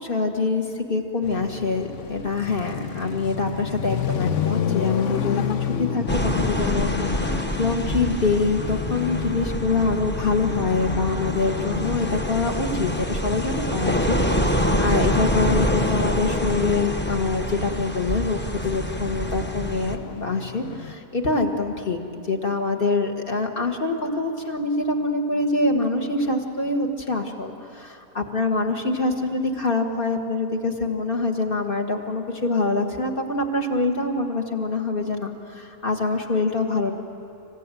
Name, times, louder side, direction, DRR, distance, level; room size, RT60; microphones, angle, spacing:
voice 1, 0.0-14.2 14.4-22.0 22.3-36.9, left 3 dB, 40° left, 3 dB, 1.8 m, -25 dB
sound 1, 1.2-20.9, left 8 dB, 60° left, 1.1 m, -32 dB
sound 2, 6.1-19.9, equal, 10° left, 0.8 m, -26 dB
27.0 x 15.5 x 9.1 m, 2.8 s
omnidirectional pair, 1.5 m